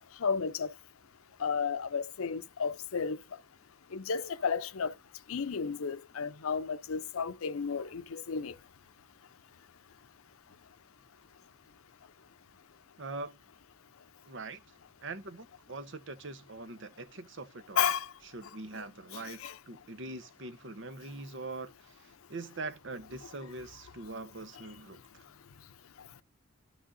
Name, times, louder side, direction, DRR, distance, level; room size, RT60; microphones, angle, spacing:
voice 1, 0.2-0.7 1.4-3.2 3.9-4.9 5.3-8.5 17.8-18.1 19.4-19.5, left 6 dB, 85° left, 0.6 m, -32 dB
voice 2, 13.0-13.4 14.3-14.6 15.0-17.9 18.3-25.2, right 3 dB, 60° right, 0.9 m, -43 dB
12.5 x 6.3 x 2.6 m
head